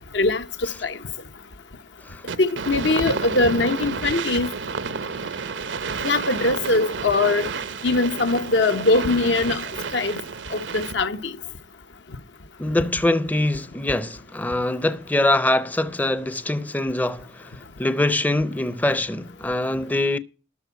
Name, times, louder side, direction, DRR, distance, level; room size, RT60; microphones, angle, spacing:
voice 1, 0.1-0.4 0.8-1.0 2.4-4.5 6.0-7.5 7.8-9.6 9.9-10.2 10.5-11.3, left 2 dB, 80° left, 0.9 m, -21 dB
sound 1, 2.3-11.2, right 5 dB, 85° right, 0.8 m, -31 dB
voice 2, 12.6-20.2, left 1 dB, 10° left, 0.5 m, -24 dB
13.0 x 4.6 x 8.0 m
head